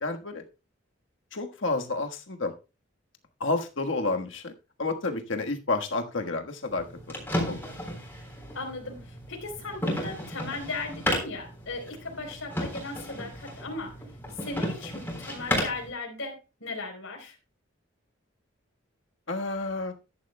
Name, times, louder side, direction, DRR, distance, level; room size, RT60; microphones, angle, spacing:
voice 1, 0.0-0.4 1.3-2.5 3.4-4.5 4.8-6.8 7.5-7.7 19.3-19.9, left 3 dB, 70° left, 4 dB, 1.4 m, -30 dB
sound 1, 6.7-15.9, equal, 10° left, 3.7 m, -34 dB
voice 2, 8.5-14.0 14.4-17.4, left 3 dB, 85° left, 2 dB, 4.0 m, -37 dB
13.5 x 10.5 x 2.2 m, 0.29 s
head